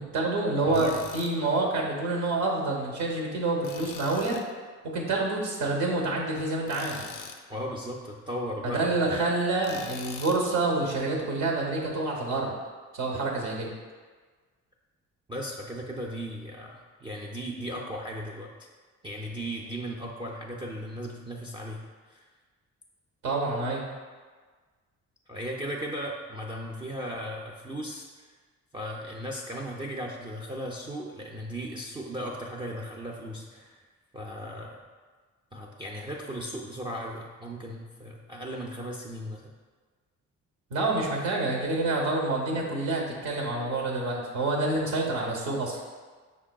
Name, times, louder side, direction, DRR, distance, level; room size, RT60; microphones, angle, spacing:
voice 1, 0.0-4.4 4.8-7.1 8.6-12.5 12.9-13.7 23.2-23.9 40.7-45.8, right 2 dB, 75° right, -1 dB, 0.9 m, -27 dB
Tools, 0.7-1.3 3.6-4.5 6.7-7.4 9.6-10.4, left 6 dB, 80° left, 0.4 m, -42 dB
voice 2, 0.7-1.0 7.5-8.9 15.3-18.5 19.0-22.3 25.3-28.3 28.7-33.8 34.1-34.8 35.5-39.5, equal, 15° right, -1 dB, 0.3 m, -36 dB
5.2 x 3.6 x 2.2 m, 1.4 s
cardioid pair, 90°, 30 cm